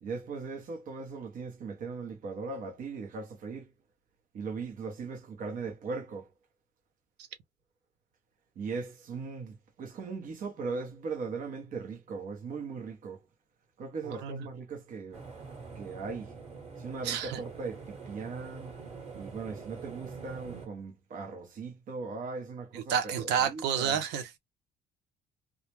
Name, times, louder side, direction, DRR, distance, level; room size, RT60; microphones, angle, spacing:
voice 1, 0.0-3.7 4.3-6.3 8.6-13.2 13.8-15.3 15.7-16.3 16.8-18.7 19.1-24.0, right 4 dB, 55° right, 0.9 m, -39 dB
voice 2, 14.1-14.4 17.0-17.4 22.9-24.4, right 8 dB, 85° right, 0.8 m, -30 dB
sound 1, 15.1-20.7, right 4 dB, 35° right, 1.4 m, -45 dB
2.3 x 2.1 x 3.0 m
cardioid pair, 110°, 17 cm